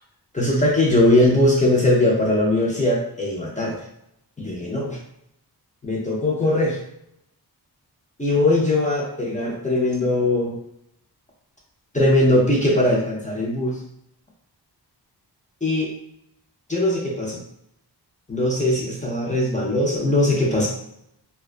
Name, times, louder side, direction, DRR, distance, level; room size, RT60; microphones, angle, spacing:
voice 1, 0.3-3.7 4.4-5.0 5.8-6.8 8.2-10.6 11.9-13.8 15.6-15.9 16.7-17.4 18.3-20.7, left 1 dB, 20° left, -3 dB, 0.5 m, -20 dB
2.3 x 2.2 x 2.4 m, 0.77 s
wide cardioid pair, 115°, 41 cm